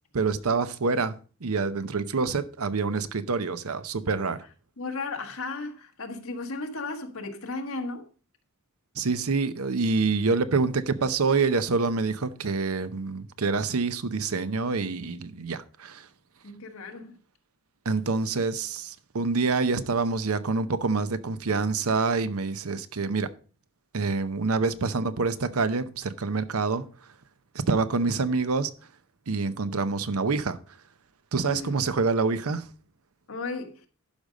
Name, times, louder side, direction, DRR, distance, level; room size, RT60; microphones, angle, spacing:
voice 1, 0.1-4.4 9.0-16.1 17.8-23.3 23.9-26.9 27.5-28.7 29.3-30.6 31.3-32.7, right 4 dB, 85° right, 0.8 m, -26 dB
voice 2, 4.8-8.1 16.4-17.2 31.5-31.7 33.3-33.9, left 3 dB, 70° left, 1.5 m, -35 dB
11.5 x 5.2 x 5.1 m
head